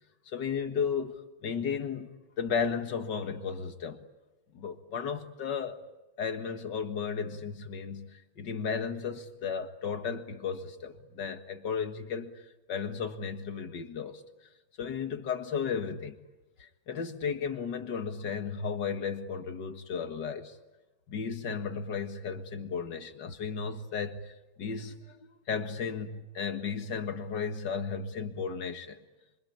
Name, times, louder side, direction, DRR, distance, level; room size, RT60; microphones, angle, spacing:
voice 1, 0.3-4.0 4.5-5.8 6.2-14.2 14.8-16.2 16.6-20.6 21.1-29.0, left 6 dB, 85° left, 2.3 m, -34 dB
26.5 x 25.0 x 8.8 m
omnidirectional pair, 1.8 m